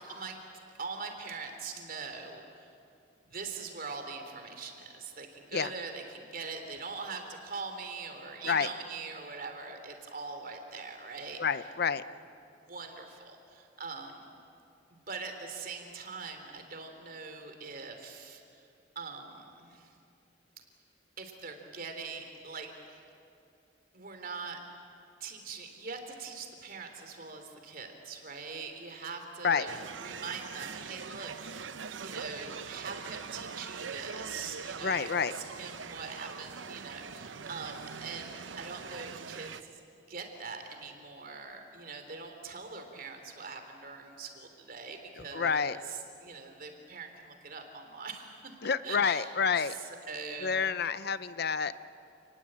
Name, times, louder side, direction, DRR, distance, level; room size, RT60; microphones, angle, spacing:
voice 1, 0.8-2.7 3.3-11.4 12.5-14.3 14.9-18.7 18.9-19.9 21.2-23.1 23.9-24.6 25.2-29.7 30.0-35.1 35.3-39.8 40.1-45.8 46.2-49.3 49.6-49.8 50.0-50.7, right 4 dB, 50° right, 5 dB, 3.3 m, -42 dB
voice 2, 11.4-12.0 29.4-29.7 34.8-35.3 45.2-45.8 48.6-49.7 50.4-51.7, left 6 dB, 55° left, 14 dB, 0.7 m, -29 dB
sound 1, 29.7-39.6, right 6 dB, 85° right, 0.8 m, -42 dB
29.0 x 19.5 x 8.8 m, 2.5 s
head